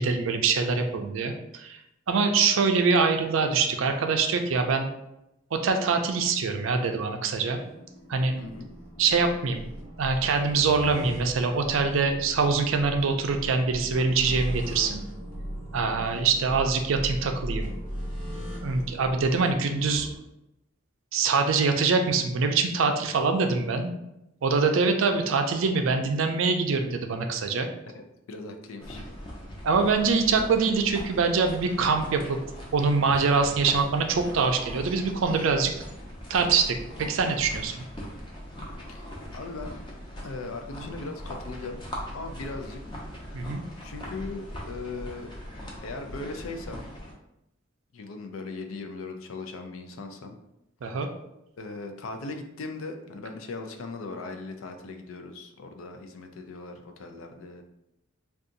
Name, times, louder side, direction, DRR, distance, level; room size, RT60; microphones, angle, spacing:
voice 1, 0.0-1.8 2.1-4.9 5.5-7.6 8.1-8.3 9.0-9.7 10.0-15.0 15.7-17.7 18.6-20.1 21.1-23.9 24.4-27.7 29.6-32.4 32.7-35.8 36.3-36.8 37.1-37.8 43.3-43.6 50.8-51.1, right 4 dB, 65° right, 6 dB, 0.4 m, -24 dB
sound 1, 7.5-20.2, equal, 40° left, 1.3 m, -38 dB
voice 2, 8.4-8.7 27.9-29.0 38.9-39.8 40.2-41.8 42.1-42.8 43.8-45.3 45.8-46.8 47.9-50.4 51.6-57.6, left 3 dB, 75° left, 5 dB, 0.4 m, -38 dB
sound 2, 28.8-47.1, equal, 25° left, 0.6 m, -40 dB
2.6 x 2.3 x 3.8 m, 0.87 s
head